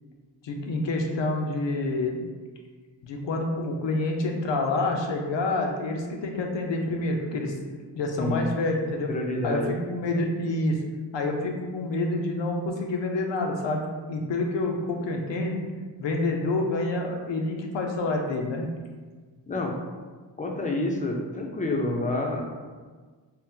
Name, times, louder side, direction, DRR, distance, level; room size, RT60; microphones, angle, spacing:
voice 1, 0.4-2.2 3.0-7.5 7.9-9.1 9.4-10.8 11.1-15.6 16.0-18.7, left 2 dB, 80° left, 2 dB, 0.6 m, -28 dB
voice 2, 8.2-8.5 9.1-9.7 19.5-19.7 20.4-22.4, left 2 dB, 20° left, 1 dB, 0.4 m, -28 dB
2.8 x 2.1 x 3.6 m, 1.4 s
cardioid pair, 75°, 43 cm